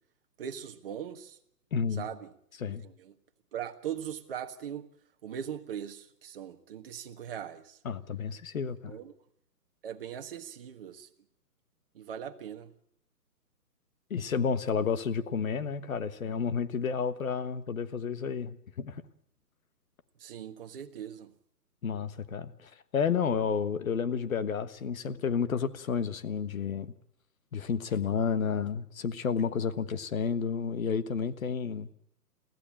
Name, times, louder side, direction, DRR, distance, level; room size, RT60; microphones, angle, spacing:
voice 1, 0.4-1.4 2.0-2.3 2.7-3.1 3.5-4.9 5.2-7.8 8.8-9.1 9.8-11.1 11.9-12.7 20.2-21.3, right 9 dB, 35° right, 1.6 m, -40 dB
voice 2, 1.7-2.1 2.6-2.8 7.8-9.0 14.1-19.0 21.8-26.9 27.5-31.9, left 6 dB, 55° left, 1.5 m, -31 dB
23.0 x 16.0 x 8.8 m
hypercardioid pair, 160°, 48 cm